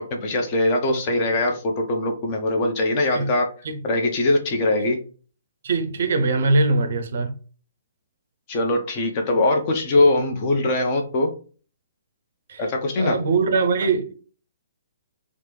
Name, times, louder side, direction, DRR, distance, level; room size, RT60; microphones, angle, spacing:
voice 1, 0.1-3.5 3.8-5.0 8.5-11.3 12.6-13.2, left 2 dB, 35° left, 0.6 m, -21 dB
voice 2, 5.6-7.3 12.5-12.6 13.0-14.2, right 3 dB, 55° right, 0.4 m, -22 dB
3.0 x 2.0 x 3.1 m
figure-of-eight pair, 125°, 0 cm